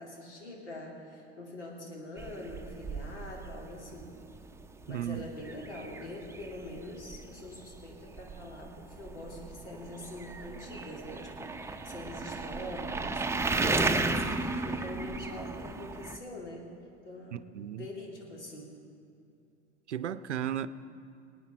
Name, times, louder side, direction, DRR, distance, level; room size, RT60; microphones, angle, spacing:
voice 1, 0.0-4.1 4.9-13.2 13.6-16.7 17.0-17.4 17.7-18.7, left 1 dB, 75° left, -1 dB, 3.3 m, -44 dB
sound 1, 2.2-16.2, right 3 dB, 5° right, 0.8 m, -35 dB
voice 2, 4.9-5.3 17.3-17.9 19.9-20.7, right 10 dB, 75° right, 15 dB, 0.6 m, -35 dB
26.0 x 9.2 x 4.5 m, 2.5 s
figure-of-eight pair, 75°, 35 cm